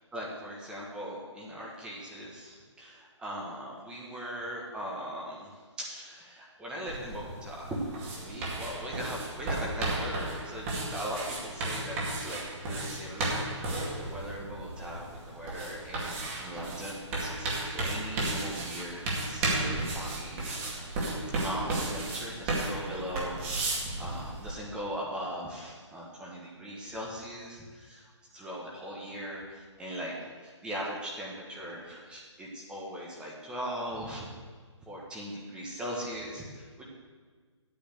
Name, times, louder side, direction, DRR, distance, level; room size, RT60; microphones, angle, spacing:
voice 1, 0.1-12.4 12.7-20.8 21.3-34.3 34.9-36.8, equal, 5° right, -3 dB, 1.3 m, -39 dB
sound 1, 6.9-24.5, right 2 dB, 25° right, 2.2 m, -34 dB
8.8 x 8.4 x 6.6 m, 1.5 s
hypercardioid pair, 155°, 16 cm